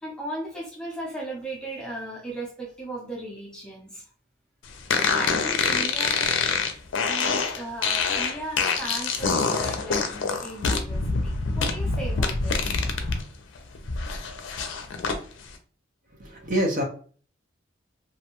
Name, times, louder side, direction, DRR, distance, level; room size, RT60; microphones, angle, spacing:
voice 1, 0.0-4.1 5.0-6.7 7.0-12.7 14.3-14.4, right 1 dB, 5° left, -2 dB, 0.5 m, -37 dB
sound 1, 4.9-13.2 13.6-15.2, left 4 dB, 75° left, 0.5 m, -25 dB
voice 2, 16.1-16.8, equal, 40° right, 2 dB, 0.6 m, -26 dB
2.5 x 2.2 x 2.9 m, 0.42 s
head